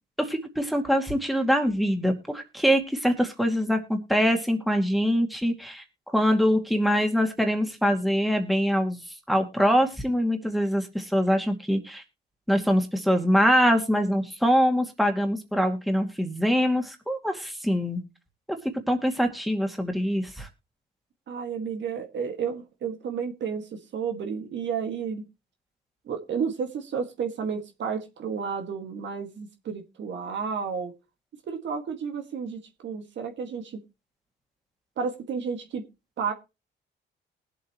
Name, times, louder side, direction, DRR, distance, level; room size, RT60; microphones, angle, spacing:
voice 1, 0.2-9.0 9.3-12.0 12.5-18.0 18.9-20.5, equal, ahead, 4 dB, 2.3 m, -24 dB
voice 2, 21.3-25.2 26.1-30.9 31.5-33.8 35.0-35.8 36.2-36.3, right 6 dB, 65° right, 4 dB, 2.1 m, -32 dB
20.0 x 7.7 x 3.1 m, 0.27 s
cardioid pair, 90°, 20 cm